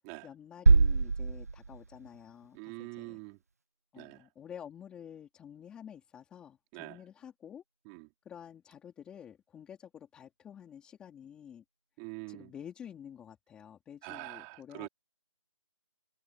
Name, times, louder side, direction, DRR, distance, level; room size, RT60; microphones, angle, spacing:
voice 1, 0.2-3.2 3.9-7.6 8.2-11.6 12.3-14.9, left 8 dB, 5° left, 2.8 m, -49 dB
sound 1, 0.7-2.5, right 4 dB, 30° right, 0.5 m, -25 dB
voice 2, 2.5-3.4 4.0-4.3 6.7-7.0 7.8-8.1 12.0-12.5 14.0-14.9, right 31 dB, 10° right, 3.3 m, -44 dB
figure-of-eight pair, 165°, 17 cm